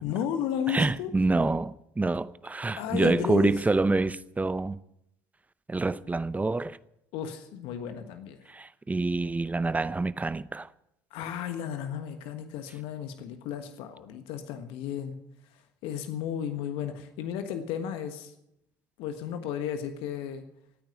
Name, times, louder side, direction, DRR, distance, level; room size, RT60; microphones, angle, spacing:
voice 1, 0.0-1.1 2.8-3.6 7.1-8.4 11.1-15.2 15.5-18.3 19.0-20.4, left 9 dB, 65° left, 1.4 m, -34 dB
voice 2, 0.7-4.8 5.7-6.8 8.5-10.7, right 3 dB, 15° right, 0.7 m, -27 dB
15.5 x 9.2 x 9.2 m
hypercardioid pair, 60°, 10 cm